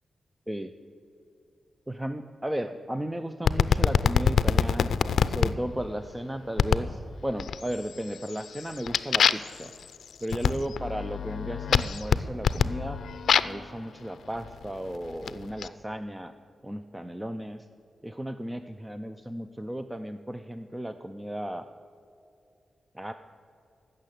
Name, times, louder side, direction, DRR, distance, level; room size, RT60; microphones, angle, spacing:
voice 1, 1.9-4.9 5.3-9.7 10.2-13.0 13.4-16.3 16.6-17.7 18.0-21.6 22.9-23.1, right 1 dB, 10° right, 9 dB, 0.4 m, -35 dB
sound 1, 3.5-5.5 6.6-6.9 7.4-7.9 8.3-13.6 14.4-15.7, left 7 dB, 85° left, 0.4 m, -25 dB
15.5 x 6.6 x 9.9 m, 2.6 s
wide cardioid pair, 160°, 0 cm